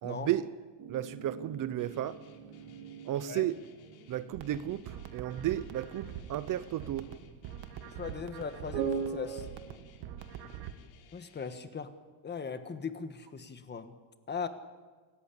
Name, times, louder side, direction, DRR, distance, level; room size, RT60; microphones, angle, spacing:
voice 1, 0.0-0.4 0.9-2.2 3.1-3.6 4.1-7.1, right 12 dB, 45° right, 0.7 m, -33 dB
sound 1, 0.8-7.1 8.7-9.4, right 6 dB, 85° right, 3.6 m, -41 dB
Guitar, 1.8-11.6, left 7 dB, 90° left, 3.6 m, -60 dB
sound 2, 4.3-10.7, right 10 dB, 65° right, 1.5 m, -45 dB
voice 2, 8.0-9.5 11.1-11.9 12.2-13.9 14.3-14.5, left 6 dB, 20° left, 1.4 m, -39 dB
28.5 x 13.5 x 8.5 m
cardioid pair, 155°, 46 cm